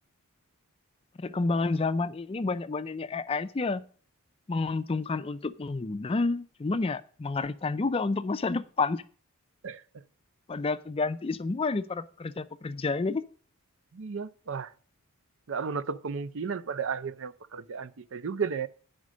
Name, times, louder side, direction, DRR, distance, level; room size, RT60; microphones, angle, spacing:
voice 1, 1.2-3.8 4.5-9.0 10.5-13.2, left 3 dB, 25° left, 0.4 m, -29 dB
voice 2, 13.9-14.7 15.5-18.7, right 5 dB, 60° right, 0.5 m, -33 dB
9.7 x 5.1 x 6.2 m
head